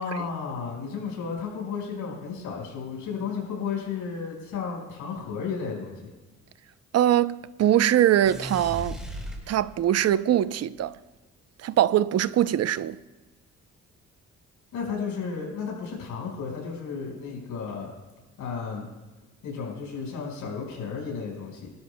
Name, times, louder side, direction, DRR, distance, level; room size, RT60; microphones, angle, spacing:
voice 1, 0.0-6.1 14.7-17.9 18.4-18.9 19.4-21.7, left 5 dB, 85° left, 5.0 m, -33 dB
voice 2, 6.9-9.0 9.5-10.9 11.6-13.0, right 11 dB, 55° right, 0.6 m, -22 dB
sound 1, 8.2-10.0, equal, ahead, 3.8 m, -37 dB
26.0 x 12.5 x 2.2 m
cardioid pair, 90°, 30 cm